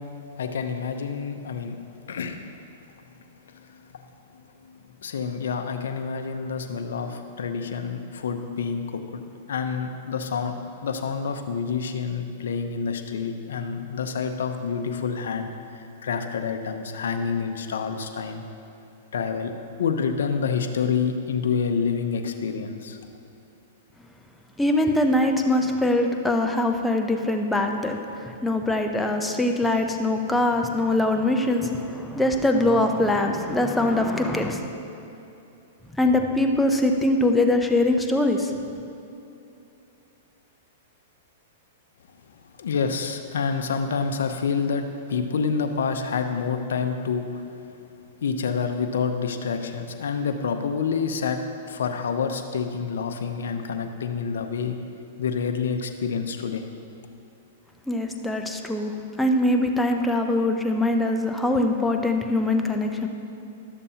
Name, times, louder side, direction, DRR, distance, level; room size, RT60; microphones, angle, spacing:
voice 1, 0.4-1.8 2.1-2.4 3.5-3.8 5.0-9.2 9.5-10.5 10.8-18.4 19.1-19.5 19.8-23.0 42.6-47.4 48.2-51.4 51.7-54.8 55.2-56.7, left 6 dB, 80° left, 6 dB, 0.6 m, -28 dB
voice 2, 24.6-34.6 36.0-38.5 57.9-63.1, left 1 dB, 5° left, 3 dB, 0.6 m, -23 dB
12.0 x 6.9 x 2.8 m, 2.8 s
hypercardioid pair, 130°, 0 cm